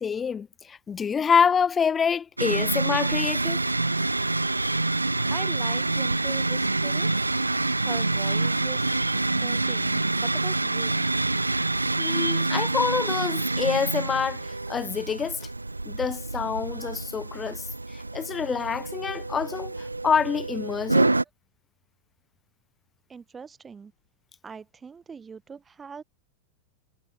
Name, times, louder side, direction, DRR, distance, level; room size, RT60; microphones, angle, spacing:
voice 1, 0.0-3.6 12.0-14.4 14.7-15.4 15.8-17.6 17.9-21.1, left 6 dB, 20° left, 1.3 m, -26 dB
sound 1, 2.4-21.2, right 2 dB, 85° right, 0.4 m, -27 dB
voice 2, 5.3-7.1 7.8-8.9 9.4-11.1 23.1-23.9 24.4-26.0, right 5 dB, 15° right, 6.9 m, -41 dB
figure-of-eight pair, 90°, 0 cm